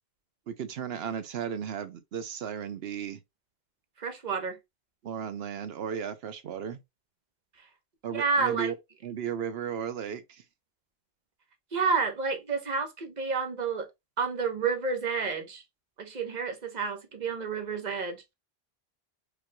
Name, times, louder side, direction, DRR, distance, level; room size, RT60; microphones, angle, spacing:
voice 1, 0.5-3.2 5.0-6.8 8.0-8.8 9.0-10.4, right 8 dB, 75° right, 0.9 m, -35 dB
voice 2, 4.0-4.6 8.1-8.7 11.7-13.9 14.2-15.6 16.0-18.3, right 5 dB, 45° right, 1.0 m, -30 dB
5.0 x 3.1 x 2.2 m
omnidirectional pair, 1.0 m